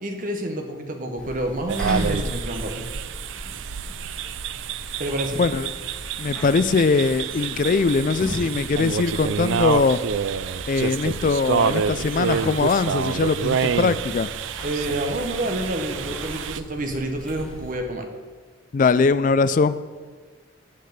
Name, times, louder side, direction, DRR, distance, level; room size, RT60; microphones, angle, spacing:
voice 1, 0.0-2.9 5.0-5.4 14.6-18.1, right 1 dB, 40° right, 4 dB, 1.0 m, -28 dB
sound 1, 1.2-17.8, equal, 5° left, 1.6 m, -38 dB
sound 2, 1.7-16.6, right 7 dB, 70° right, 0.3 m, -28 dB
voice 2, 5.4-5.7 6.2-10.0 10.7-14.3 18.7-19.8, left 4 dB, 40° left, 14 dB, 0.3 m, -21 dB
7.7 x 6.5 x 6.6 m, 1.5 s
head